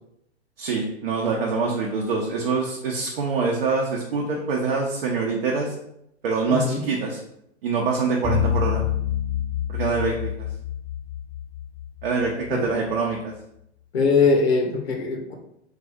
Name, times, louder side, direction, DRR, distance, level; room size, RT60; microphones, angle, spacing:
voice 1, 0.6-5.7 6.2-7.2 7.6-8.8 9.7-10.5 12.0-13.3, right 4 dB, 55° right, -1 dB, 0.7 m, -25 dB
voice 2, 6.5-6.8 12.5-12.7 13.9-15.3, left 4 dB, 70° left, 2 dB, 0.8 m, -21 dB
sound 1, 8.2-12.7, left 9 dB, 15° right, 0.7 m, -27 dB
3.2 x 2.5 x 3.5 m, 0.77 s
figure-of-eight pair, 105°, 33 cm